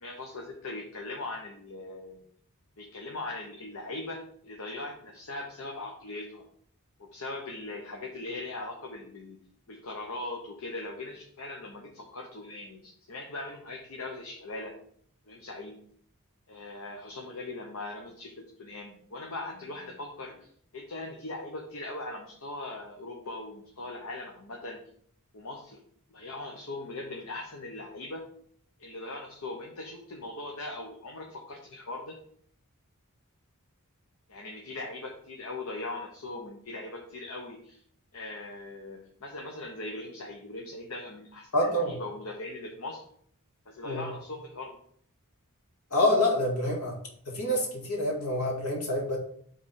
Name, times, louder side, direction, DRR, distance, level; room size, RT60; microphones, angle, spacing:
voice 1, 0.0-2.2 2.8-6.4 7.0-9.4 9.7-14.8 15.3-15.8 16.5-20.5 20.7-24.8 25.3-25.8 26.1-28.2 28.8-32.2 34.3-37.8 38.1-43.0 43.7-44.8, left 2 dB, 65° left, 2 dB, 1.0 m, -40 dB
voice 2, 41.5-42.0 43.8-44.1 45.9-47.0 47.3-49.2, left 1 dB, 85° left, 0 dB, 1.9 m, -27 dB
6.4 x 3.9 x 5.6 m, 0.62 s
head